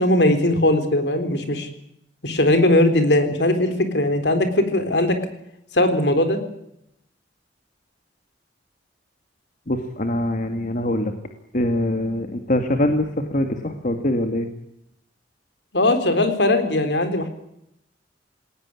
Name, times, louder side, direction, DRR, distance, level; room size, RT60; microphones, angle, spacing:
voice 1, 0.0-1.7 2.2-5.2 5.7-6.4 15.7-17.3, left 1 dB, 70° left, 9 dB, 3.9 m, -19 dB
voice 2, 9.7-11.1 11.5-14.5, left 1 dB, 45° left, 6 dB, 2.1 m, -23 dB
20.0 x 19.0 x 9.8 m, 0.78 s
head